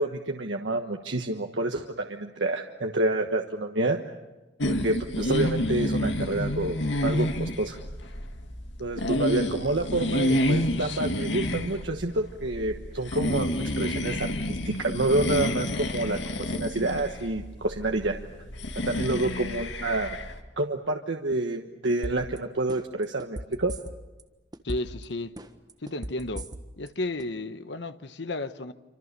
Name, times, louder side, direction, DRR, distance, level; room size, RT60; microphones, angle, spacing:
voice 1, 0.0-4.0 4.6-6.8 7.0-7.8 8.8-18.2 18.8-20.2 20.6-23.7, right 2 dB, 80° right, 1.3 m, -28 dB
sound 1, 4.6-20.4, left 1 dB, 85° left, 2.1 m, -29 dB
sound 2, 22.0-22.4 22.7-24.2 24.5-25.0 25.4-26.9 27.2-27.3, right 1 dB, 25° right, 1.5 m, -36 dB
voice 2, 24.6-25.3 25.8-26.5 26.8-28.7, left 2 dB, 70° left, 1.2 m, -33 dB
27.5 x 26.0 x 6.8 m
head